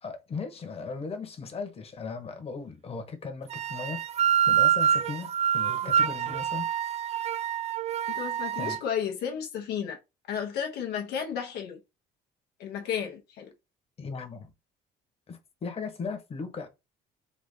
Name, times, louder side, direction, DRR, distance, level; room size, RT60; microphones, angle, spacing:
voice 1, 0.0-4.0 4.5-6.7 8.6-8.8 14.0-14.5 15.3-16.7, left 4 dB, 35° left, 1.2 m, -37 dB
sound 1, 3.5-8.8, right 9 dB, 40° right, 0.4 m, -26 dB
voice 2, 8.2-10.0 10.3-11.8 12.6-13.5, left 8 dB, 75° left, 1.0 m, -33 dB
4.2 x 2.8 x 3.8 m
cardioid pair, 110°, 17 cm